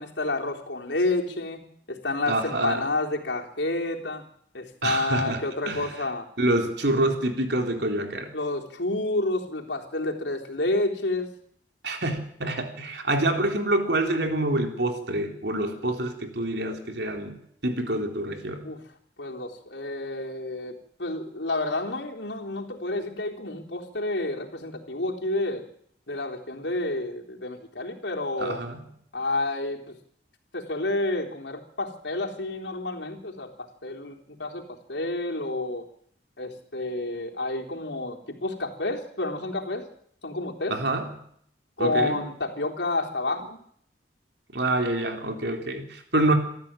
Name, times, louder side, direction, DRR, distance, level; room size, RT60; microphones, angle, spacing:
voice 1, 0.0-1.6 1.9-4.2 4.5-6.3 8.3-11.3 18.6-18.8 19.2-25.7 26.1-28.6 29.1-30.0 30.5-33.5 33.8-34.6 34.9-35.9 36.4-39.9 40.2-40.8 41.8-43.6, left 2 dB, 85° left, 1 dB, 3.7 m, -29 dB
voice 2, 2.3-2.8 4.8-5.9 6.4-8.3 11.8-18.7 28.4-28.8 40.7-41.1 41.8-42.2 44.5-46.3, right 1 dB, 70° right, 4 dB, 3.8 m, -27 dB
27.5 x 13.5 x 9.1 m, 0.68 s
head